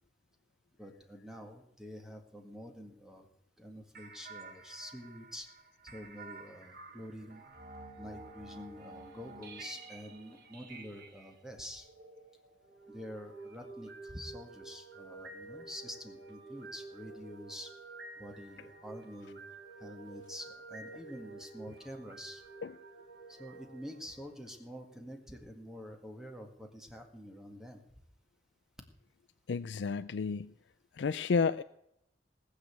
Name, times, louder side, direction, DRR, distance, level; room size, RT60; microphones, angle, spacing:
voice 1, 0.8-3.3 3.6-5.5 5.8-7.4 8.0-11.9 12.9-17.7 18.2-19.4 19.8-22.4 23.3-27.8, equal, 5° right, 4 dB, 1.8 m, -47 dB
sound 1, 3.9-12.9, right 3 dB, 55° right, 2.1 m, -51 dB
sound 2, 12.6-24.8, right 3 dB, 85° right, 4.4 m, -50 dB
voice 2, 29.5-30.5 30.9-31.6, left 5 dB, 80° left, 12 dB, 0.4 m, -31 dB
19.0 x 6.7 x 8.3 m, 0.80 s
head